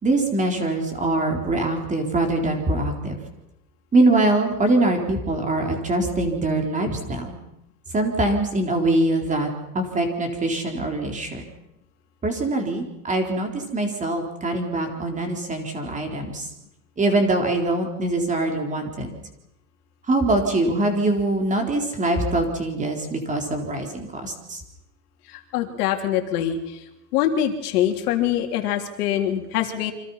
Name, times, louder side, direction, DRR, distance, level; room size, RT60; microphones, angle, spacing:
voice 1, 0.0-3.2 3.9-7.4 7.9-11.4 12.2-16.5 17.0-19.1 20.1-24.6, right 2 dB, 15° right, 3 dB, 4.0 m, -23 dB
voice 2, 25.3-26.8 27.1-29.9, left 10 dB, 70° left, 4 dB, 3.5 m, -24 dB
29.0 x 25.5 x 5.7 m, 0.88 s
supercardioid pair, 145°, 48 cm